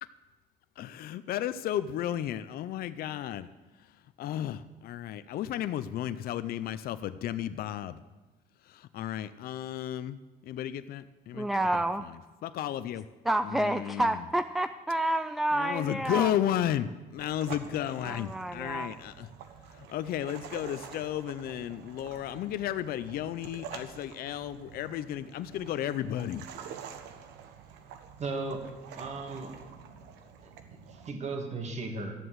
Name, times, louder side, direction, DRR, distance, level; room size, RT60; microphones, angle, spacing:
voice 1, 0.8-3.5 4.2-8.0 8.7-10.2 10.4-12.1 12.4-13.0 13.4-14.2 15.5-19.3 19.7-26.4, left 11 dB, 60° left, 12 dB, 0.5 m, -33 dB
voice 2, 11.3-12.1 13.3-16.3 18.0-18.9, right 1 dB, ahead, 10 dB, 0.4 m, -29 dB
sound 1, 17.2-31.1, right 7 dB, 90° right, 1.2 m, -47 dB
voice 3, 28.2-28.6 28.9-29.6 30.4-32.2, right 3 dB, 40° right, 3 dB, 2.4 m, -36 dB
12.5 x 7.8 x 7.9 m, 1.2 s
cardioid pair, 110°, 17 cm